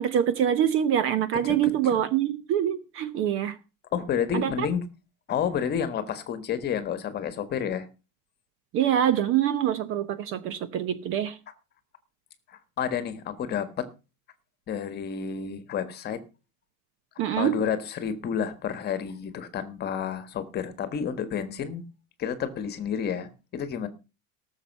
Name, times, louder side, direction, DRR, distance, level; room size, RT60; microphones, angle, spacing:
voice 1, 0.0-3.6 4.3-4.5 8.7-11.4 17.2-17.6, right 10 dB, 30° right, 0.9 m, -25 dB
voice 2, 3.9-4.8 5.3-7.9 12.5-13.9 14.7-16.2 17.4-21.8 22.2-23.9, left 8 dB, 25° left, 1.6 m, -30 dB
18.0 x 7.2 x 5.5 m
supercardioid pair, 175°, 40 cm